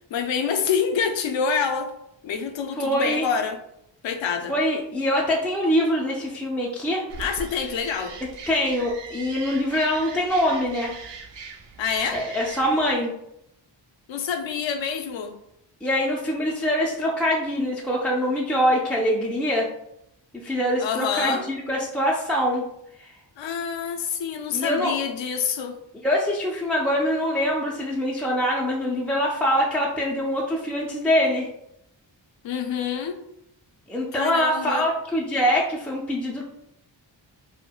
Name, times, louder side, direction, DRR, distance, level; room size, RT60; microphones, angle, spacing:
voice 1, 0.1-1.9 2.2-3.6 4.0-4.5 7.2-8.1 11.8-12.2 14.1-15.4 20.8-21.5 23.4-25.8 32.4-33.2 34.1-34.9, left 6 dB, 80° left, 6 dB, 0.5 m, -27 dB
voice 2, 2.8-3.3 4.5-7.0 8.5-10.9 12.1-13.1 15.8-19.7 20.4-22.6 23.0-23.1 24.5-24.9 26.0-31.5 33.9-36.4, equal, 5° left, -4 dB, 0.3 m, -24 dB
sound 1, 7.1-13.0, right 4 dB, 70° right, 0.5 m, -40 dB
4.4 x 2.1 x 2.2 m, 0.79 s
wide cardioid pair, 130°, 45 cm